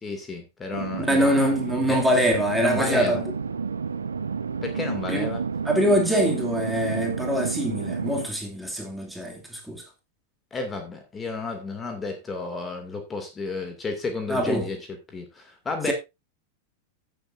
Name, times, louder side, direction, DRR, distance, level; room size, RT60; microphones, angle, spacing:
voice 1, 0.0-1.3 1.9-2.0 2.6-3.2 4.6-5.4 10.5-14.8 15.1-15.9, left 3 dB, 20° left, 2.3 m, -32 dB
sound 1, 0.7-8.3, right 5 dB, 75° right, 0.9 m, -30 dB
voice 2, 1.0-3.3 5.1-5.3 5.6-9.8 14.3-14.7 15.9-16.0, equal, 5° right, 2.4 m, -24 dB
15.5 x 7.7 x 2.6 m
figure-of-eight pair, 90°, 0 cm